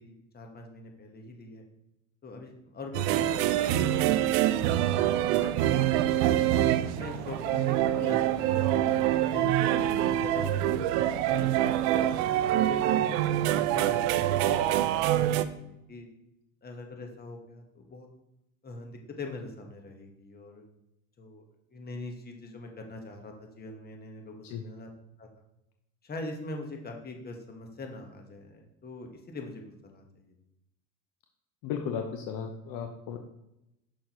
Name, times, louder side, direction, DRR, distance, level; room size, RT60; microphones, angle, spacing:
voice 1, 0.0-1.6 2.2-6.3 6.9-11.8 12.5-16.1 16.6-18.1 18.6-20.6 21.2-21.4 21.7-24.9 25.2-25.3 26.0-30.3, left 2 dB, 25° left, 3 dB, 1.4 m, -43 dB
sound 1, 2.9-15.4, right 12 dB, 60° right, 0.6 m, -25 dB
voice 2, 31.6-33.2, left 7 dB, 55° left, 4 dB, 0.9 m, -35 dB
6.3 x 6.2 x 3.0 m, 0.87 s
hypercardioid pair, 95°, 41 cm